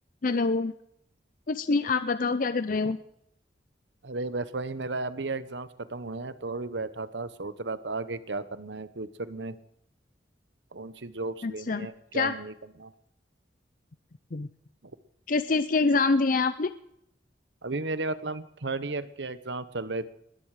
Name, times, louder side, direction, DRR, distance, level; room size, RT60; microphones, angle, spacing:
voice 1, 0.2-0.7 1.5-3.0 11.4-11.9 12.1-12.3 14.3-14.5 15.3-16.7, left 3 dB, 50° left, 12 dB, 0.6 m, -25 dB
voice 2, 4.0-9.6 10.7-12.9 17.6-20.1, right 3 dB, 80° right, 14 dB, 1.0 m, -34 dB
20.0 x 13.5 x 4.9 m, 0.75 s
head